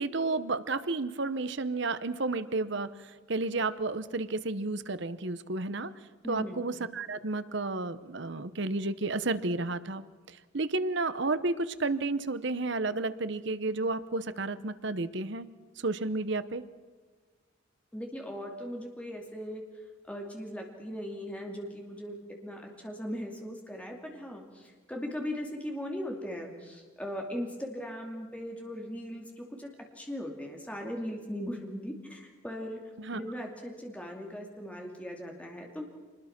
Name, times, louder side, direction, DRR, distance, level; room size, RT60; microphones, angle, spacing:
voice 1, 0.0-2.9 3.3-5.9 6.3-10.0 10.5-15.5 15.8-16.6 33.0-33.2, right 3 dB, 55° right, 13 dB, 0.9 m, -31 dB
voice 2, 6.2-6.7 17.9-19.6 20.1-22.2 22.4-35.9, equal, 5° left, 1 dB, 2.6 m, -39 dB
26.5 x 20.5 x 6.0 m, 1.4 s
head